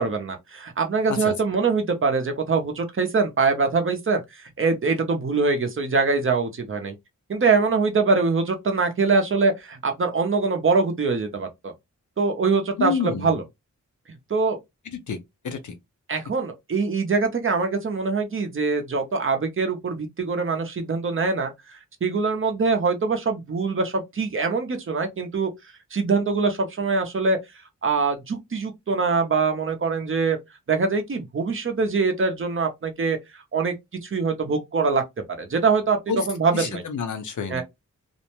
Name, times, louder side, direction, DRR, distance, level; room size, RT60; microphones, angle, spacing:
voice 1, 0.0-6.9 7.3-11.7 12.2-13.4 14.1-14.6 16.1-25.5 25.9-27.4 27.8-30.4 30.7-33.7 34.0-35.0 35.4-36.0 36.3-36.8 37.5-37.6, right 4 dB, 45° right, 0.6 m, -23 dB
voice 2, 12.8-13.3 15.1-15.2 15.4-15.7 36.1-36.2 36.5-37.6, left 6 dB, 75° left, 0.7 m, -28 dB
2.5 x 2.1 x 2.9 m
wide cardioid pair, 130°, 30 cm